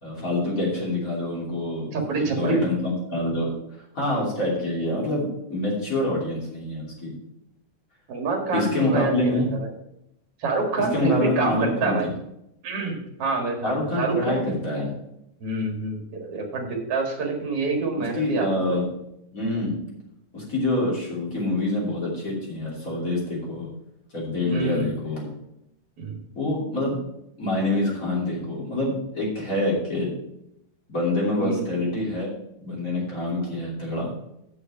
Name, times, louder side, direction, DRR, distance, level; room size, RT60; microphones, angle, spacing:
voice 1, 0.0-3.5 3.9-7.1 8.5-9.5 10.9-12.1 13.6-14.9 18.1-18.9 19.3-19.8 20.3-23.7 24.1-25.2 26.3-27.0 27.4-30.1 30.9-32.3 32.6-34.1, left 1 dB, 25° left, -4 dB, 3.1 m, -26 dB
voice 2, 1.9-2.6 8.1-9.7 10.4-12.1 12.6-14.5 15.4-18.8 24.4-24.9 26.0-26.2 31.4-31.7, right 3 dB, 50° right, 2 dB, 2.6 m, -27 dB
7.2 x 6.5 x 7.2 m, 0.80 s
omnidirectional pair, 3.8 m